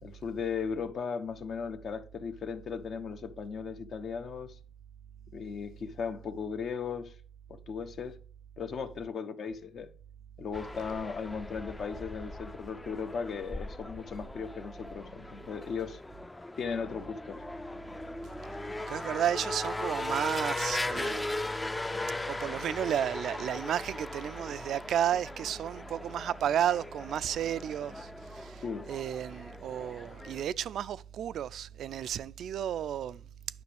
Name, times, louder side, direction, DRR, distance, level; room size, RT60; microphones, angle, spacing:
voice 1, 0.0-4.6 5.3-7.2 7.5-8.2 8.6-9.9 10.4-16.0 16.6-17.4 28.6-28.9, left 6 dB, 60° left, 0.9 m, -37 dB
sound 1, 10.5-30.4, left 2 dB, 15° left, 0.4 m, -39 dB
voice 2, 18.9-21.3 22.3-33.2, right 10 dB, 70° right, 0.3 m, -32 dB
9.5 x 6.0 x 3.4 m
cardioid pair, 90°, 0 cm